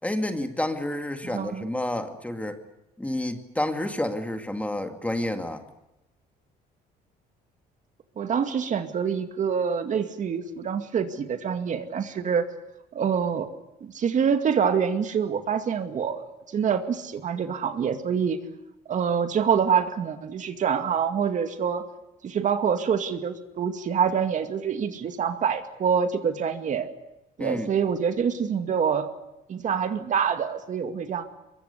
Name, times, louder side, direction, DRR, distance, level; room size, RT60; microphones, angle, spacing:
voice 1, 0.0-2.6 3.0-5.6 27.4-27.7, left 1 dB, 10° left, 6 dB, 2.3 m, -29 dB
voice 2, 1.2-1.7 8.2-12.4 12.9-13.5 13.8-16.3 16.5-18.4 18.9-21.8 22.2-26.9 27.4-29.1 29.5-31.3, right 7 dB, 50° right, 7 dB, 2.3 m, -26 dB
23.5 x 22.5 x 8.3 m, 0.92 s
cardioid pair, 110°, 17 cm